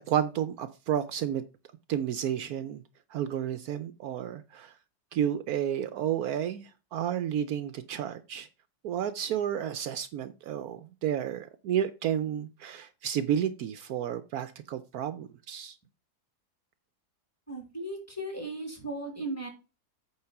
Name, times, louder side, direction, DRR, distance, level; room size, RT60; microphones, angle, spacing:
voice 1, 0.0-1.4 1.9-2.8 3.1-4.7 5.1-8.5 8.8-15.8, right 9 dB, 75° right, 1.1 m, -31 dB
voice 2, 17.5-19.5, right 2 dB, 10° left, 2.8 m, -36 dB
8.7 x 4.0 x 5.8 m
omnidirectional pair, 1.7 m